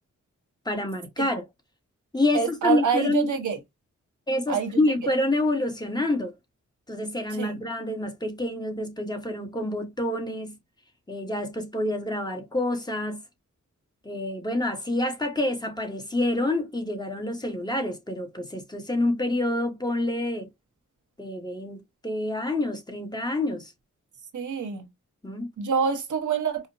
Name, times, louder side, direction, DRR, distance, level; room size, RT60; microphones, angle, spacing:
voice 1, 0.6-1.5 2.1-3.3 4.3-6.3 6.9-10.5 11.1-13.2 14.0-20.5 21.2-23.7 25.2-25.5, left 1 dB, 15° left, 1.1 m, -27 dB
voice 2, 2.3-3.6 4.5-4.8 7.4-7.6 24.3-24.9 25.6-26.7, right 6 dB, 80° right, 1.0 m, -26 dB
4.9 x 2.1 x 2.6 m
wide cardioid pair, 80°, 30 cm